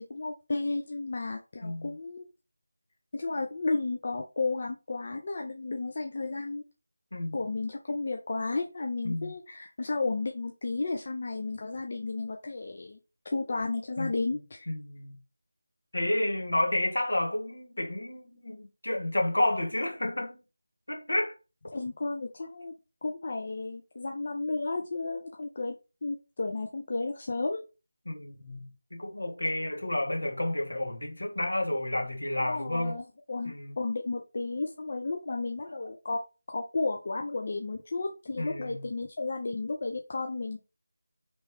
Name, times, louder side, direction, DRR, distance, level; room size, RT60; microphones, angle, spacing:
voice 1, 0.0-2.3 3.1-6.6 7.3-13.0 13.2-14.7 21.7-22.7 23.0-25.8 26.0-27.6 32.4-36.2 36.5-40.6, left 3 dB, 40° left, 0.5 m, -33 dB
voice 2, 14.7-15.2 15.9-20.4 20.9-21.3 28.0-32.9 33.4-33.7 38.4-38.9, left 1 dB, 70° left, 1.3 m, -30 dB
3.3 x 3.0 x 3.1 m
figure-of-eight pair, 165°, 0 cm